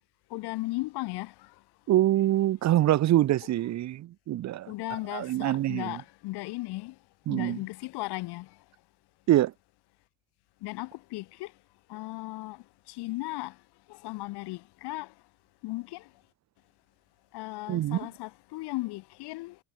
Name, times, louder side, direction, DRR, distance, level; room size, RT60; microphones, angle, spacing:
voice 1, 0.3-1.5 4.7-6.9 7.3-8.6 10.6-11.5 11.9-13.6 13.9-15.1 15.6-16.1 17.3-19.6, left 21 dB, 70° left, 4.4 m, -36 dB
voice 2, 1.9-4.7 5.1-6.0 7.3-7.6 9.3-9.5 17.7-18.0, right 14 dB, 40° right, 1.3 m, -25 dB
cardioid pair, 170°, 41 cm